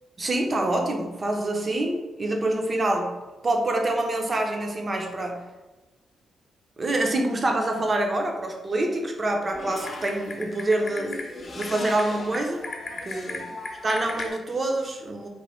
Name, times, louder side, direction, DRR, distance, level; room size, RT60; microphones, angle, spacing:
voice 1, 0.2-3.1 3.4-5.4 6.8-11.2 11.6-12.7 13.1-13.5 13.8-15.3, right 2 dB, 35° right, 2 dB, 0.6 m, -26 dB
Typing, 9.5-14.3, left 3 dB, 45° left, 0.6 m, -36 dB
3.1 x 2.2 x 4.1 m, 1.1 s
cardioid pair, 90°, 0 cm